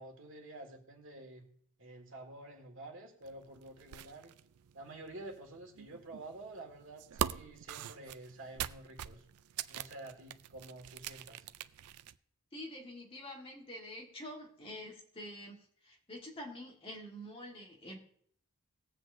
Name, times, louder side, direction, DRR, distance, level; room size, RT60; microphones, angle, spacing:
voice 1, 0.0-1.5 1.8-4.3 4.7-9.3 9.7-11.5, right 2 dB, 60° right, 2 dB, 1.9 m, -49 dB
sound 1, 3.2-12.2, right 9 dB, 85° right, 0.4 m, -43 dB
voice 2, 12.5-18.0, left 1 dB, 25° left, 0 dB, 1.6 m, -47 dB
19.5 x 7.7 x 2.6 m, 0.63 s
head